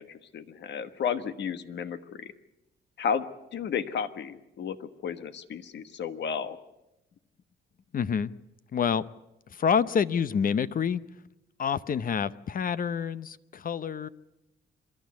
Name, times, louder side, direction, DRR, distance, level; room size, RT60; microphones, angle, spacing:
voice 1, 0.0-2.3 3.0-6.6, left 7 dB, 60° left, 11 dB, 1.3 m, -33 dB
voice 2, 7.9-8.3 8.7-9.0 9.5-11.0 11.6-14.1, left 7 dB, 45° left, 16 dB, 0.8 m, -27 dB
27.0 x 12.0 x 9.4 m, 0.94 s
cardioid pair, 90°, 20 cm